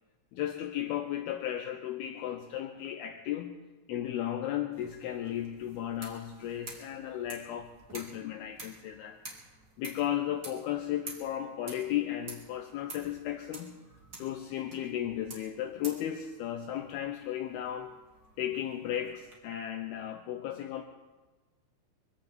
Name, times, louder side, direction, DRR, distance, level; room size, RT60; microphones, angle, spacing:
voice 1, 0.3-3.5 3.9-9.2 9.8-13.7 14.2-17.9 18.4-20.8, left 11 dB, 85° left, 5 dB, 2.2 m, -35 dB
sound 1, 4.7-19.4, right 3 dB, 35° right, 2.1 m, -50 dB
24.0 x 16.5 x 3.6 m, 1.2 s
omnidirectional pair, 5.5 m